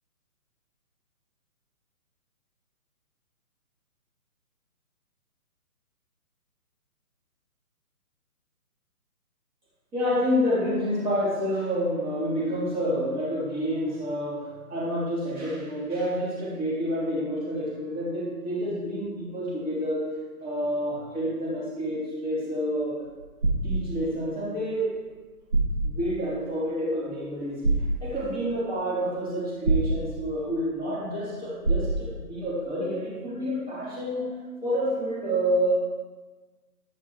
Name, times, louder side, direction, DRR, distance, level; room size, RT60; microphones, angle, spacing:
voice 1, 9.9-20.1 20.4-23.0 23.6-25.0 25.8-27.6 28.0-34.3 34.6-35.7, equal, 10° right, -8 dB, 3.3 m, -28 dB
sound 1, 23.1-23.8 25.1-25.2 25.5-25.9 27.6-28.0 29.6-30.0 31.6-32.0, right 2 dB, 60° right, 2.4 m, -24 dB
13.5 x 11.5 x 3.1 m, 1.3 s
figure-of-eight pair, 140°, 46 cm